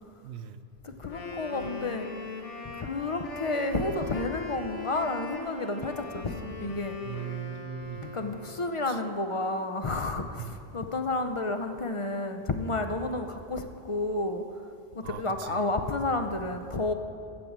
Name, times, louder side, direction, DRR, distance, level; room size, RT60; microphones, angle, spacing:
voice 1, 0.2-0.6 7.0-8.2 8.9-9.0 10.4-10.6 15.0-15.7, right 10 dB, 90° right, 10 dB, 0.9 m, -39 dB
voice 2, 0.8-2.1 2.6-7.0 8.0-14.4 15.0-16.9, left 2 dB, 40° left, 6 dB, 0.5 m, -31 dB
Wind instrument woodwind instrument, 1.0-8.7, left 3 dB, 80° left, 1.4 m, -40 dB
15.0 x 5.2 x 7.3 m, 2.5 s
omnidirectional pair, 1.2 m